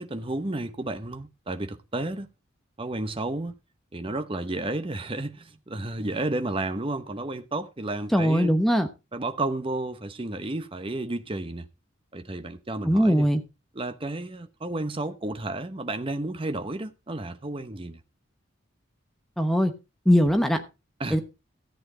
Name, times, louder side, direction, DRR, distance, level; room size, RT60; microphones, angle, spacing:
voice 1, 0.0-2.3 2.8-3.6 3.9-8.5 9.1-11.7 12.1-13.3 13.8-18.0 21.0-21.2, right 2 dB, 25° right, 0.9 m, -32 dB
voice 2, 8.1-8.9 12.8-13.4 19.4-19.7 20.1-20.6 21.1-21.2, equal, ahead, 0.9 m, -20 dB
14.0 x 8.4 x 3.8 m
head